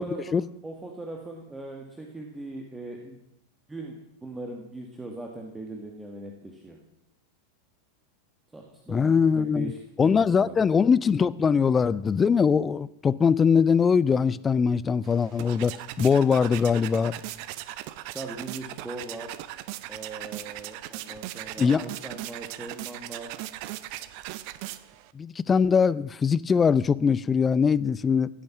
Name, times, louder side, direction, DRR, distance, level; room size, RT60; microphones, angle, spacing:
voice 1, 0.0-3.2 3.7-6.8 8.5-10.6 18.1-19.3 19.9-23.3, right 2 dB, 10° right, 2.0 m, -40 dB
voice 2, 8.9-9.7 10.0-17.1 21.6-21.8 25.1-28.3, left 6 dB, 20° left, 0.5 m, -22 dB
sound 1, 15.0-25.1, right 15 dB, 45° right, 0.7 m, -39 dB
16.0 x 8.5 x 7.3 m
figure-of-eight pair, 90°, 0 cm